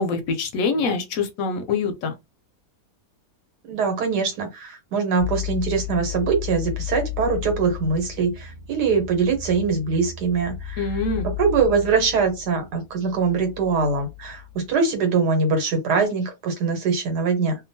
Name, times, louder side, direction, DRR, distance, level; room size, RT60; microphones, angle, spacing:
voice 1, 0.0-2.1 10.8-11.3, left 4 dB, 70° left, 0.9 m, -24 dB
voice 2, 3.6-17.6, right 5 dB, 85° right, 1.5 m, -23 dB
sound 1, 5.2-14.8, left 11 dB, 65° right, 1.2 m, -34 dB
2.8 x 2.2 x 2.6 m
omnidirectional pair, 1.7 m